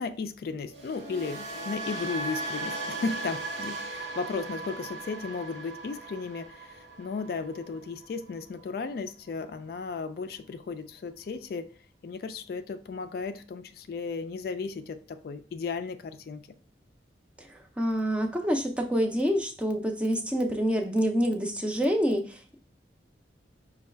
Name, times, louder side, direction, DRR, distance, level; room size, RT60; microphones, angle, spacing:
voice 1, 0.0-11.7 12.0-16.5, left 4 dB, 55° left, 9 dB, 0.3 m, -35 dB
sound 1, 0.7-8.8 9.1-9.4, right 2 dB, 75° right, 0.9 m, -38 dB
voice 2, 17.8-22.5, equal, 5° right, 3 dB, 0.5 m, -27 dB
5.3 x 2.3 x 3.3 m, 0.42 s
head